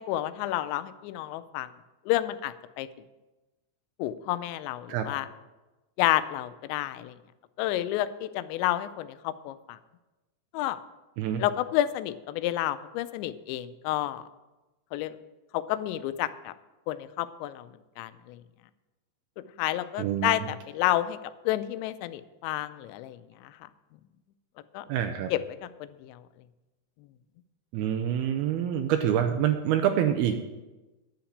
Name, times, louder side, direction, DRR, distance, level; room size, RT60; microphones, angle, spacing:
voice 1, 0.0-1.7 2.1-2.9 4.0-5.3 6.0-7.1 7.6-9.8 10.5-10.8 11.4-14.2 14.9-15.2 15.5-16.5 16.9-17.7 18.0-18.4 19.6-21.2 21.5-23.2 24.7-24.9 25.3-26.2, left 14 dB, 90° left, 13 dB, 2.9 m, -30 dB
voice 2, 20.0-20.5 24.9-25.3 27.7-30.4, right 10 dB, 90° right, 6 dB, 2.3 m, -26 dB
10.5 x 5.9 x 8.5 m, 1.1 s
omnidirectional pair, 5.1 m